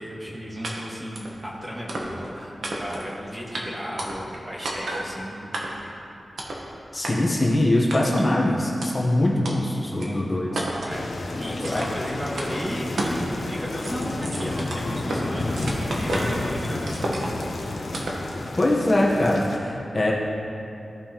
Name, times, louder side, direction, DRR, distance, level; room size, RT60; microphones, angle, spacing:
voice 1, 0.0-5.8 9.9-11.1 11.4-17.3, equal, 25° right, -4 dB, 1.6 m, -34 dB
sound 1, 0.6-0.7 1.2-1.3 1.9-2.3 2.6-3.1 3.5-3.6 4.0-4.4 4.7-5.1 5.5-5.9 6.4-6.6 7.0-7.1 7.9-8.3 8.8-8.9 9.5-9.6 10.0-10.1 10.6-11.0 11.6-12.0 12.4-12.5 13.0-13.2 13.5-15.2 15.6-16.4 16.9-17.5 17.9-18.2, right 1 dB, 85° right, 1.1 m, -31 dB
voice 2, 6.9-10.5 11.6-11.8 18.6-20.1, left 1 dB, 35° left, -3 dB, 1.1 m, -22 dB
sound 2, 10.9-19.6, left 2 dB, 70° left, 0.8 m, -31 dB
15.0 x 5.4 x 3.0 m, 2.7 s
wide cardioid pair, 105°, 0 cm